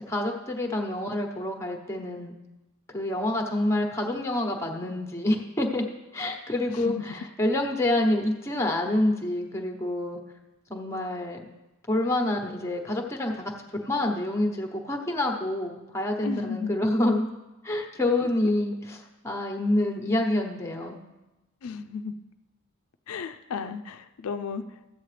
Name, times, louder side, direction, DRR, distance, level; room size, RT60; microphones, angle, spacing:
voice 1, 0.1-2.3 2.9-5.8 6.1-10.2 10.7-11.5 11.9-13.5 13.9-17.3 17.6-21.0, left 1 dB, 15° left, 2 dB, 1.0 m, -27 dB
voice 2, 16.2-16.7 21.6-22.1 23.1-24.6, left 5 dB, 80° left, 9 dB, 0.4 m, -33 dB
13.5 x 8.6 x 3.3 m, 1.0 s
head